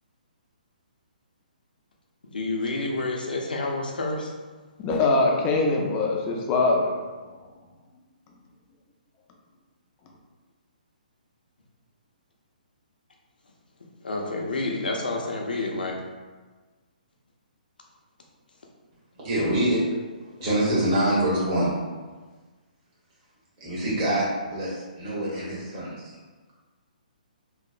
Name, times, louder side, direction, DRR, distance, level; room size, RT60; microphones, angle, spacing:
voice 1, 2.2-4.3 14.0-16.0, left 2 dB, 85° left, 0 dB, 0.5 m, -29 dB
voice 2, 4.8-6.9, left 3 dB, 25° left, 0 dB, 0.4 m, -22 dB
voice 3, 19.1-19.8 20.2-21.7 23.6-26.1, right 1 dB, 30° right, -8 dB, 1.1 m, -25 dB
3.0 x 2.0 x 2.4 m, 1.3 s
hypercardioid pair, 140°, 5 cm